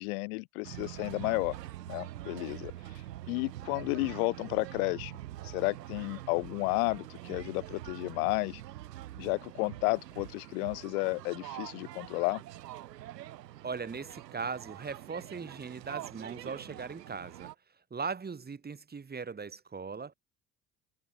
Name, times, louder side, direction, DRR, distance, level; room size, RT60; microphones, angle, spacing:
voice 1, 0.0-1.6 1.9-3.0 3.3-5.1 5.4-8.6 9.2-12.4, left 29 dB, 60° left, 0.5 m, -32 dB
sound 1, 0.6-17.6, right 14 dB, 75° right, 4.0 m, -45 dB
voice 2, 13.6-17.5 17.9-20.1, right 5 dB, 20° right, 1.4 m, -39 dB
figure-of-eight pair, 60°, 50 cm